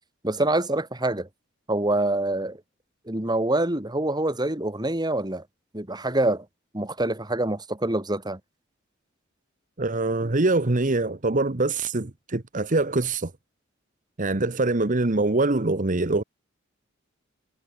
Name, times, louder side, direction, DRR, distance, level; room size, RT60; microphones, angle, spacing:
voice 1, 0.2-1.3 1.7-2.6 3.1-5.4 5.7-6.4 6.7-8.4, right 1 dB, 20° right, 2.7 m, -25 dB
voice 2, 9.8-13.3 14.2-16.2, right 2 dB, 40° right, 1.1 m, -24 dB
head